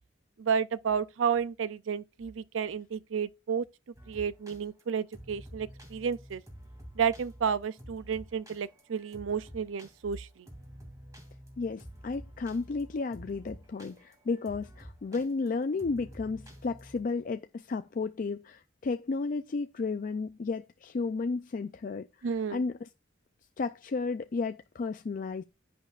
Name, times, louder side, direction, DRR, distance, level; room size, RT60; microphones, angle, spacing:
voice 1, 0.4-3.7 4.1-6.4 7.0-10.5 22.2-22.6, right 7 dB, 80° right, 0.5 m, -31 dB
sound 1, 3.9-17.0, equal, 15° right, 2.5 m, -50 dB
voice 2, 11.6-22.9 23.6-25.4, left 4 dB, 45° left, 0.4 m, -33 dB
10.0 x 8.6 x 2.4 m
head